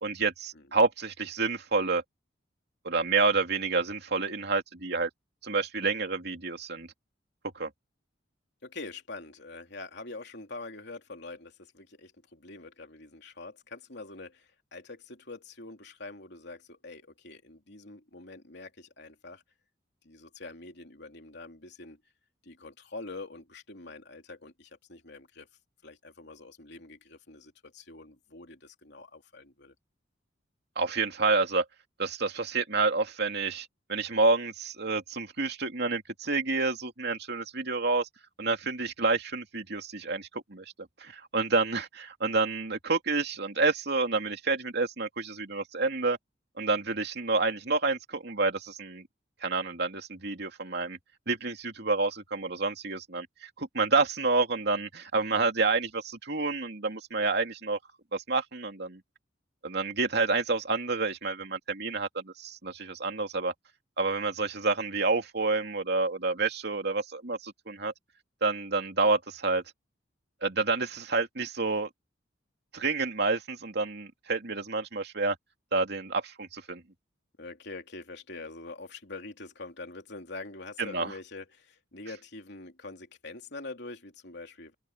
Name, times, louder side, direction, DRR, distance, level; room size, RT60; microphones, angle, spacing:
voice 1, 0.0-2.0 2.8-5.1 5.4-6.9 7.5-7.7 30.8-31.6 32.0-38.1 38.4-40.6 41.0-46.2 46.6-49.0 49.4-51.0 51.3-57.8 58.1-59.0 59.6-63.5 64.0-67.9 68.4-69.6 70.4-71.9 72.7-75.4 75.7-76.8 80.8-81.1, right 3 dB, 60° right, 2.7 m, -29 dB
voice 2, 8.6-19.4 20.0-22.0 22.4-25.5 25.8-29.7 77.4-84.7, left 3 dB, 60° left, 3.3 m, -45 dB
head